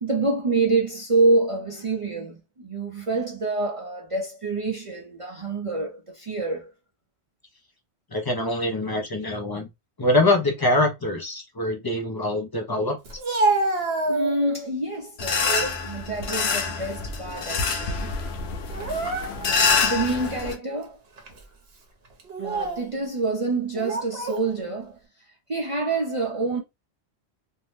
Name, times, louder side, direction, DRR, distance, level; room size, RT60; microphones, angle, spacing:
voice 1, 0.0-6.7 14.1-18.1 19.8-21.0 22.4-25.0 25.5-26.6, right 3 dB, 40° right, 0.6 m, -26 dB
voice 2, 8.1-9.7 10.0-13.0, left 1 dB, 35° left, 0.4 m, -24 dB
Speech, 13.1-14.7 15.2-15.8 16.2-17.4 17.7-17.9 18.7-19.7 20.2-20.4 21.2-21.4 22.2-22.9 23.8-24.4, right 2 dB, 70° right, 1.0 m, -28 dB
sound 1, 15.2-20.5, left 5 dB, 75° left, 0.9 m, -26 dB
2.6 x 2.1 x 3.1 m
omnidirectional pair, 1.1 m